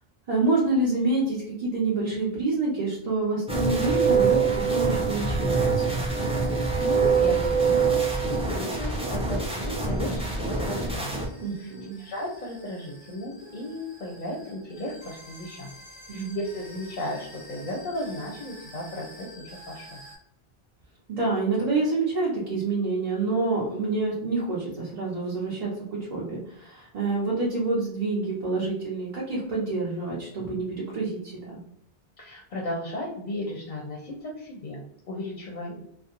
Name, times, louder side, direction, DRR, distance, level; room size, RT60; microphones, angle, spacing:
voice 1, 0.3-6.0 11.4-12.0 16.1-16.4 21.1-31.6, right 3 dB, 45° right, -6 dB, 0.6 m, -27 dB
sound 1, 3.5-11.3, right 5 dB, 10° right, 0.3 m, -24 dB
sound 2, 5.6-20.2, equal, 80° right, 1.1 m, -50 dB
voice 2, 6.5-11.3 11.6-11.7 12.0-15.8 16.1-20.0 32.2-35.8, left 1 dB, 55° left, -1 dB, 0.6 m, -35 dB
2.4 x 2.1 x 2.8 m, 0.72 s
omnidirectional pair, 1.0 m